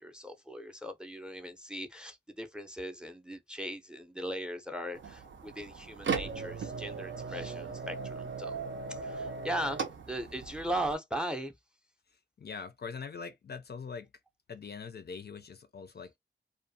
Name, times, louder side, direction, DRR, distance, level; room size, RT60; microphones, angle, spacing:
voice 1, 0.0-8.6 8.9-11.5, right 1 dB, 5° right, 0.5 m, -38 dB
sound 1, 4.9-10.9, right 5 dB, 70° right, 0.6 m, -38 dB
voice 2, 12.4-14.1 14.5-16.2, left 5 dB, 55° left, 0.4 m, -42 dB
2.5 x 2.2 x 2.6 m
wide cardioid pair, 60°, 20 cm